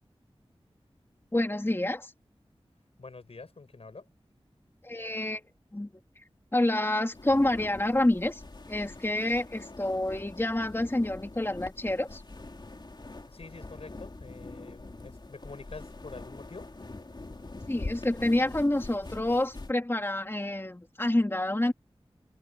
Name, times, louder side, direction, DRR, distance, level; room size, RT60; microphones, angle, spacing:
voice 1, 1.3-2.1 4.8-5.4 5.7-5.9 6.5-8.4 8.7-12.2 17.7-21.7, left 1 dB, 25° left, 2.8 m, -28 dB
voice 2, 3.0-4.1 13.3-16.7, left 3 dB, 75° left, 6.3 m, -46 dB
sound 1, 7.1-19.7, left 2 dB, 45° left, 3.7 m, -44 dB
wide cardioid pair, 70°, 10 cm